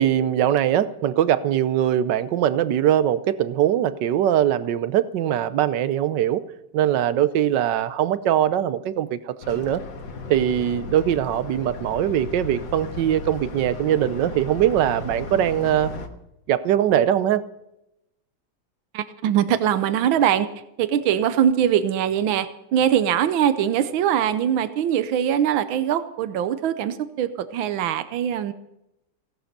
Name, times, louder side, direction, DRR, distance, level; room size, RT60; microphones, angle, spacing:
voice 1, 0.0-6.4 6.7-9.8 10.3-15.9 16.5-17.4, right 11 dB, 70° right, 14 dB, 1.4 m, -21 dB
sound 1, 9.4-16.1, left 3 dB, 70° left, 2.2 m, -35 dB
voice 2, 18.9-20.5 20.8-28.5, right 9 dB, 85° right, 12 dB, 1.6 m, -22 dB
16.5 x 11.5 x 6.7 m, 0.87 s
omnidirectional pair, 2.1 m